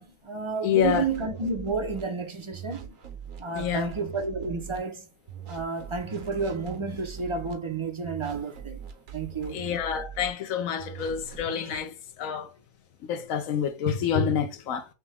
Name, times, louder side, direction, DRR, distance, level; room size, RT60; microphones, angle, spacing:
voice 1, 0.0-2.9 3.4-5.1 5.5-8.8 9.1-9.7, right 4 dB, 30° right, 0.5 m, -31 dB
voice 2, 0.6-1.0 3.5-3.9 9.5-12.5 13.0-14.8, left 8 dB, 70° left, 1.1 m, -27 dB
sound 1, 0.8-2.0 2.5-4.8 5.3-7.5 8.0-10.3 10.8-11.8, right 7 dB, 65° right, 1.2 m, -42 dB
6.0 x 2.2 x 3.5 m
omnidirectional pair, 1.5 m